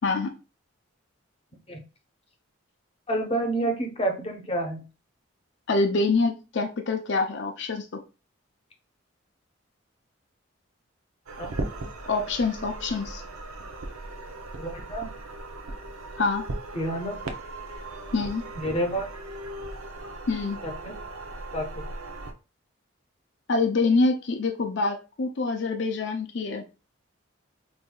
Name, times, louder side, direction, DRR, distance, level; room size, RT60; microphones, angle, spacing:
voice 1, 0.0-0.3 5.7-8.0 12.1-13.2 16.2-16.4 18.1-18.4 20.3-20.6 23.5-26.6, left 3 dB, 55° left, 5 dB, 0.5 m, -25 dB
voice 2, 3.1-4.8 11.4-11.5 14.6-15.1 16.7-17.1 18.5-19.1 20.6-20.9 21.5-21.8, right 1 dB, 30° left, 3 dB, 0.8 m, -29 dB
sound 1, 11.3-22.3, right 2 dB, 85° right, 0.6 m, -38 dB
5.3 x 2.6 x 2.3 m, 0.31 s
head